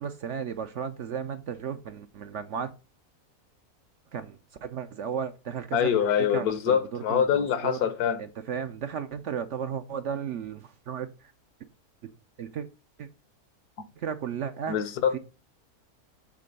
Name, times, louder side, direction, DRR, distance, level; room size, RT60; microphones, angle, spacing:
voice 1, 0.0-2.7 4.1-7.8 8.2-11.1 12.4-12.7 13.0-13.1 14.0-14.8 15.1-15.2, right 7 dB, 60° right, 0.8 m, -34 dB
voice 2, 5.7-8.2 14.7-15.2, left 8 dB, 75° left, 1.5 m, -25 dB
7.5 x 3.7 x 5.3 m
omnidirectional pair, 1.6 m